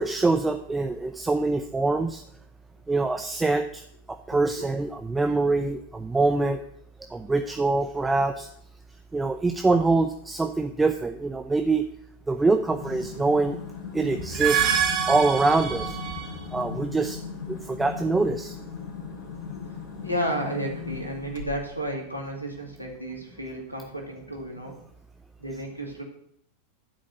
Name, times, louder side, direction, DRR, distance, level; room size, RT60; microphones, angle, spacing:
voice 1, 0.0-2.2 2.9-3.8 4.3-6.6 7.1-8.5 9.1-11.8 12.3-13.6 13.9-14.6 15.1-16.0 16.5-17.2 17.5-18.6, right 3 dB, 10° right, 6 dB, 0.7 m, -24 dB
sound 1, 12.6-21.8, left 6 dB, 50° left, 3.2 m, -38 dB
sound 2, 14.2-16.5, right 9 dB, 35° right, 1.6 m, -26 dB
voice 2, 19.2-19.6 20.0-24.8 25.4-26.0, right 1 dB, 90° left, 1 dB, 2.4 m, -32 dB
11.5 x 5.0 x 7.9 m, 0.69 s
figure-of-eight pair, 90°, 0 cm